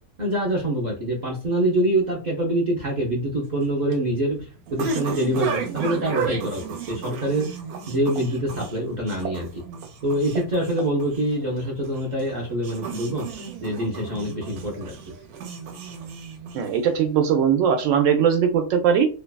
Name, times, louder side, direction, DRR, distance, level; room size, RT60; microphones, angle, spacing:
voice 1, 0.2-4.5 4.7-7.5 7.9-9.6 10.0-13.3 13.6-15.1, right 1 dB, 50° right, -3 dB, 0.5 m, -25 dB
sound 1, 3.4-17.0, right 6 dB, 90° right, 1.1 m, -34 dB
voice 2, 16.5-19.1, right 8 dB, 70° right, 5 dB, 0.9 m, -20 dB
2.7 x 2.3 x 2.2 m, 0.35 s
omnidirectional pair, 1.5 m